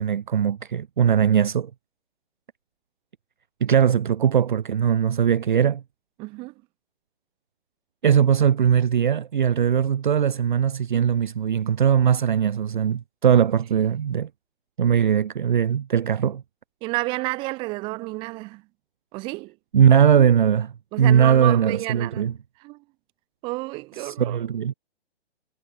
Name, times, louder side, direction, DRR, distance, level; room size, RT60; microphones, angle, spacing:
voice 1, 0.0-1.7 3.6-5.8 8.0-14.3 14.8-16.4 19.7-20.7 21.0-22.3 24.0-24.7, right 8 dB, 50° right, 0.8 m, -20 dB
voice 2, 6.2-6.5 16.8-18.6 19.1-19.6 20.9-22.3 22.6-22.8 23.4-24.4, right 23 dB, 15° right, 5.0 m, -30 dB
hypercardioid pair, 175°, 32 cm